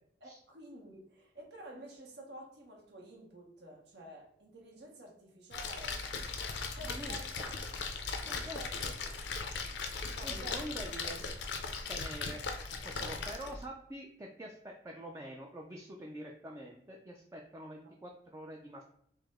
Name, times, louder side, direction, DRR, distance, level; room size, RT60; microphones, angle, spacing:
voice 1, 0.2-6.1 6.8-7.3 8.3-9.1 10.1-10.8, right 1 dB, 70° right, -1 dB, 0.9 m, -50 dB
Splash splatter, 5.5-13.7, left 4 dB, 80° left, 0.5 m, -38 dB
voice 2, 6.7-7.5 8.2-8.9 10.2-11.4 11.9-18.8, right 1 dB, 20° right, 0 dB, 0.3 m, -46 dB
4.7 x 2.0 x 3.5 m, 0.69 s
head